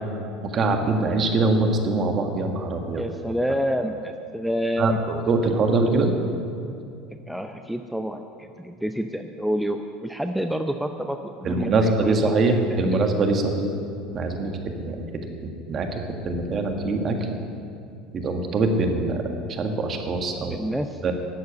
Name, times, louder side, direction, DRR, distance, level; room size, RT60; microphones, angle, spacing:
voice 1, 0.4-3.0 4.8-6.1 11.4-13.7 14.1-15.0 15.4-17.4 18.1-20.6 21.0-21.1, right 3 dB, 40° right, 4 dB, 1.8 m, -23 dB
voice 2, 2.9-5.0 7.3-13.0 20.5-21.1, equal, ahead, 6 dB, 0.6 m, -28 dB
12.0 x 8.0 x 8.1 m, 2.5 s
hypercardioid pair, 80°, 0 cm